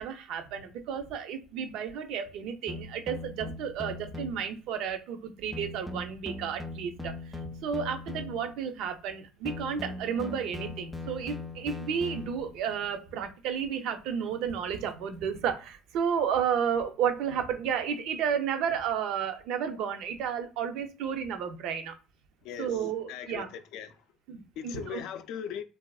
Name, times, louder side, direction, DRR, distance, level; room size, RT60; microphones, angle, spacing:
voice 1, 0.0-7.4 7.6-21.9 22.6-23.5 24.3-25.0, right 7 dB, 70° right, 0.5 m, -32 dB
sound 1, 2.7-4.6 5.5-8.6 9.5-12.6, left 2 dB, ahead, 0.4 m, -40 dB
voice 2, 23.1-23.9 24.6-25.6, left 8 dB, 70° left, 0.4 m, -39 dB
2.7 x 2.4 x 2.3 m
supercardioid pair, 95°, 0 cm